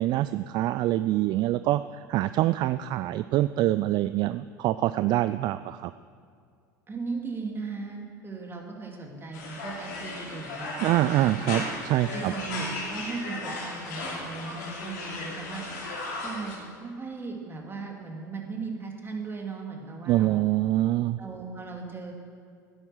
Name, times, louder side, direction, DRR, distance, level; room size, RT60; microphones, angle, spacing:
voice 1, 0.0-1.8 2.1-5.9 10.8-12.3 20.1-21.2, right 15 dB, 50° right, 13 dB, 0.3 m, -25 dB
voice 2, 6.9-11.4 12.1-15.6 16.2-20.5 21.2-22.1, right 4 dB, 25° right, 1 dB, 2.6 m, -37 dB
sound 1, 9.3-16.6, left 2 dB, 70° left, 3.2 m, -36 dB
12.0 x 9.8 x 6.2 m, 2.3 s
hypercardioid pair, 80°, 10 cm